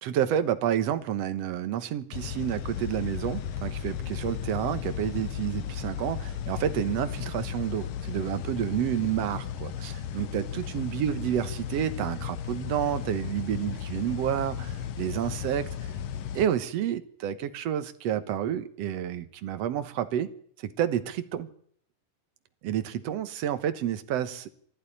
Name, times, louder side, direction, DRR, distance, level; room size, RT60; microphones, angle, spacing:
voice 1, 0.0-15.7 16.3-20.3 20.6-21.5 22.6-24.5, right 10 dB, 60° right, 1.9 m, -29 dB
sound 1, 2.1-16.5, left 9 dB, 85° left, 2.9 m, -35 dB
21.5 x 14.5 x 9.9 m
omnidirectional pair, 3.9 m